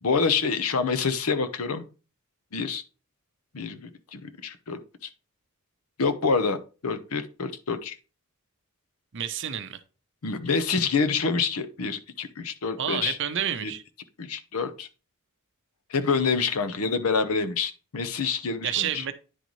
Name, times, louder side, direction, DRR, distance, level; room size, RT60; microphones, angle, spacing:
voice 1, 0.0-1.9 2.5-2.8 3.5-5.1 6.0-7.9 10.2-13.2 13.6-13.7 14.2-14.9 15.9-19.0, left 5 dB, 80° left, 10 dB, 0.7 m, -27 dB
voice 2, 9.1-9.8 12.8-13.8 18.6-19.1, right 9 dB, 55° right, 11 dB, 0.6 m, -29 dB
9.9 x 3.9 x 3.1 m, 0.34 s
head